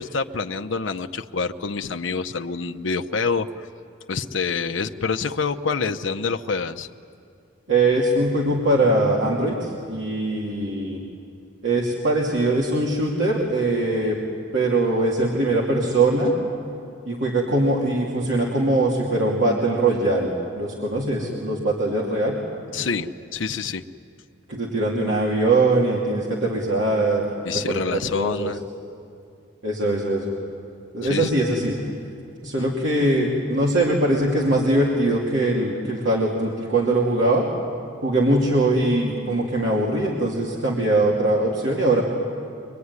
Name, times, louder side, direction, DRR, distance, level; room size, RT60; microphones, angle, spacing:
voice 1, 0.0-3.7 4.1-6.9 22.7-23.8 27.4-28.6 31.0-31.4 32.6-32.7, left 5 dB, 80° left, 6 dB, 0.7 m, -27 dB
voice 2, 7.7-11.0 11.6-14.2 14.5-16.3 17.1-22.4 24.5-27.3 27.7-28.5 29.6-30.3 30.9-31.8 32.4-37.5 38.0-42.0, right 2 dB, 70° right, -4 dB, 2.8 m, -21 dB
24.0 x 23.0 x 9.6 m, 2.5 s
head